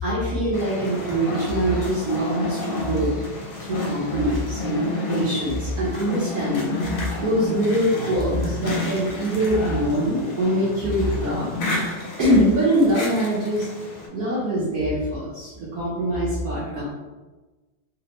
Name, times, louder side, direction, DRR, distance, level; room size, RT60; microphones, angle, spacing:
voice 1, 0.0-3.1 3.6-11.9 12.2-16.8, equal, 65° right, -7 dB, 0.9 m, -23 dB
sound 1, 0.5-14.1, left 2 dB, 75° left, 1.4 m, -31 dB
3.3 x 2.1 x 2.9 m, 1.2 s
omnidirectional pair, 2.3 m